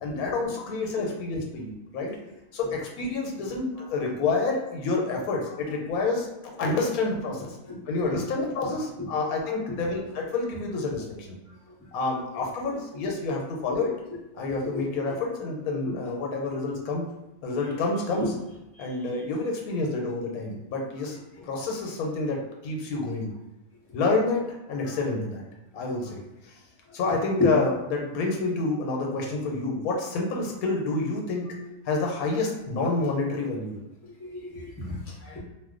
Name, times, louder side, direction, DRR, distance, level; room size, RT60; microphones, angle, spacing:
voice 1, 0.0-2.2 2.5-7.6 7.9-11.4 11.9-13.9 14.3-17.0 17.4-18.3 18.8-21.2 21.4-23.3 23.9-25.4 25.7-26.2 26.9-31.4 31.8-33.8, left 3 dB, 85° left, 0 dB, 1.1 m, -28 dB
voice 2, 34.2-35.4, left 3 dB, 20° left, -4 dB, 0.4 m, -29 dB
2.6 x 2.1 x 3.6 m, 0.96 s
omnidirectional pair, 1.5 m